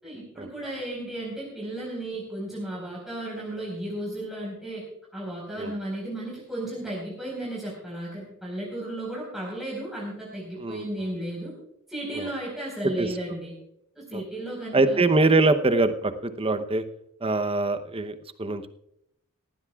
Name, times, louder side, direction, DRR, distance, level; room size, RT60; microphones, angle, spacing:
voice 1, 0.0-4.8 5.1-11.5 11.9-13.6 13.9-15.0, right 1 dB, ahead, -5 dB, 4.6 m, -34 dB
voice 2, 14.7-16.8 17.2-18.7, right 2 dB, 25° right, 10 dB, 0.8 m, -23 dB
19.0 x 16.0 x 2.4 m, 0.77 s
head